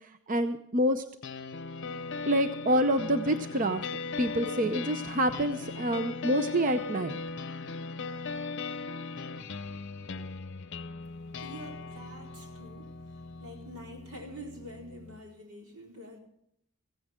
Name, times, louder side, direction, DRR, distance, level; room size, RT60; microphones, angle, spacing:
voice 1, 0.3-1.0 2.3-3.8 4.2-7.2, equal, 40° right, 9 dB, 0.7 m, -27 dB
sound 1, 1.2-15.2, left 4 dB, 55° left, 0.7 m, -39 dB
voice 2, 11.4-12.9 13.4-16.2, equal, 85° right, 1 dB, 4.5 m, -46 dB
16.0 x 15.5 x 3.6 m, 0.74 s
head